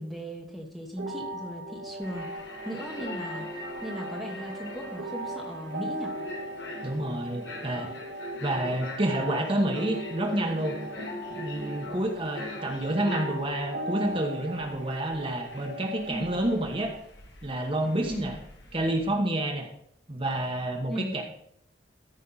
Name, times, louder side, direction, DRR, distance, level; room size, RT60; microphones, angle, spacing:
voice 1, 0.0-2.3 2.6-3.5 3.8-6.1 16.1-16.3 18.1-18.3 20.9-21.1, right 1 dB, ahead, 1 dB, 1.1 m, -37 dB
sound 1, 1.0-17.0, right 1 dB, 70° right, 1.9 m, -39 dB
sound 2, 2.0-19.1, left 1 dB, 60° left, 1.6 m, -43 dB
Wind instrument woodwind instrument, 3.4-11.4, left 2 dB, 50° right, 1.7 m, -49 dB
voice 2, 6.8-7.9 8.4-10.8 11.3-16.9 17.4-18.4 18.7-19.7 20.1-21.2, right 1 dB, 25° right, 2 dB, 1.1 m, -29 dB
14.0 x 5.5 x 4.0 m, 0.68 s
head